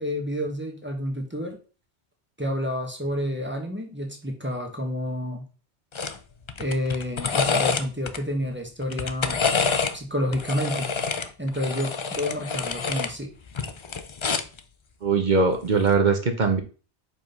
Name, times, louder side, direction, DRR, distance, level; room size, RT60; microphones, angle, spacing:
voice 1, 0.0-1.6 2.4-5.5 6.6-9.4 9.9-10.9 11.4-13.3, left 1 dB, 10° right, 1 dB, 1.3 m, -29 dB
sound 1, 5.9-6.2 6.5-8.2 8.8-10.0 10.3-13.1 13.5-14.6 15.8-16.0, left 5 dB, 45° left, 0.3 m, -27 dB
voice 2, 15.0-16.6, right 4 dB, 45° right, 5 dB, 0.9 m, -21 dB
5.0 x 3.8 x 5.3 m, 0.36 s
omnidirectional pair, 1.2 m